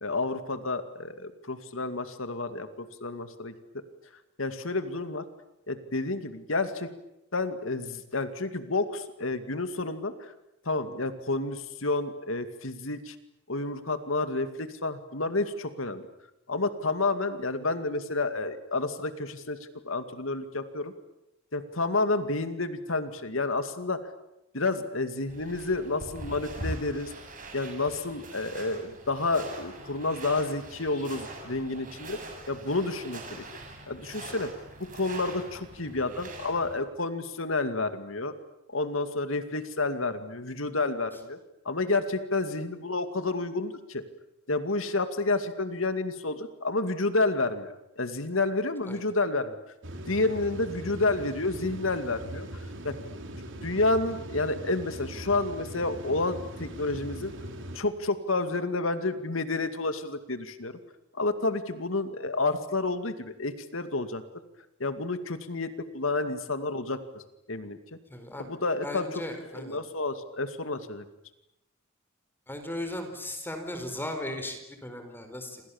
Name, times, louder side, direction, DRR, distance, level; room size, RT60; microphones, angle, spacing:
voice 1, 0.0-3.5 4.4-5.3 5.7-6.9 7.3-10.3 10.7-13.2 13.5-16.0 16.5-19.6 19.8-20.9 21.5-24.0 24.5-27.1 27.5-32.2 32.5-33.4 33.9-34.5 34.9-38.3 38.7-41.4 41.6-44.0 44.5-49.6 50.1-52.5 52.8-52.9 53.6-57.3 57.7-60.7 61.1-64.2 64.8-67.2 67.5-68.0 68.4-69.1 69.3-71.0, left 3 dB, 80° left, 10 dB, 2.3 m, -30 dB
sound 1, 25.3-36.8, right 2 dB, 45° right, 7.2 m, -42 dB
sound 2, 49.8-57.8, right 1 dB, 65° right, 3.9 m, -40 dB
voice 2, 68.1-68.5 68.8-69.8 72.5-75.6, left 1 dB, 10° left, 6 dB, 4.5 m, -37 dB
28.0 x 27.0 x 7.2 m, 0.87 s
head